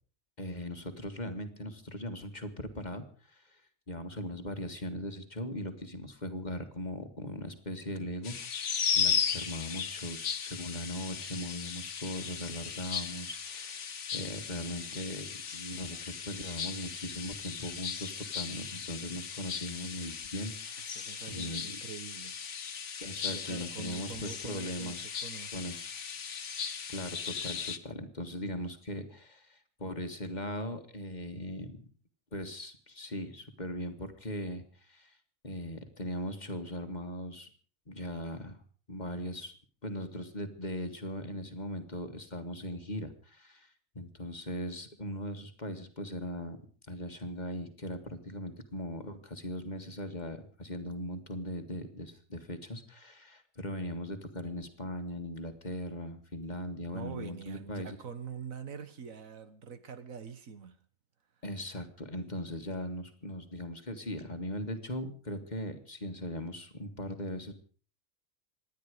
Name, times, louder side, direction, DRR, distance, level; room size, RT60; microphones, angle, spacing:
voice 1, 0.4-3.6 3.9-21.8 23.0-25.1 25.5-25.9 26.9-31.8 32.3-35.2 35.4-37.5 37.9-38.6 38.9-39.5 39.8-46.6 46.9-58.0 61.4-67.5, left 1 dB, 35° left, 2.0 m, -39 dB
sound 1, 8.2-27.8, left 7 dB, 65° left, 1.5 m, -37 dB
voice 2, 20.8-22.4 23.3-25.7 56.9-60.8, right 6 dB, 80° right, 1.9 m, -45 dB
26.5 x 10.5 x 5.0 m
omnidirectional pair, 1.4 m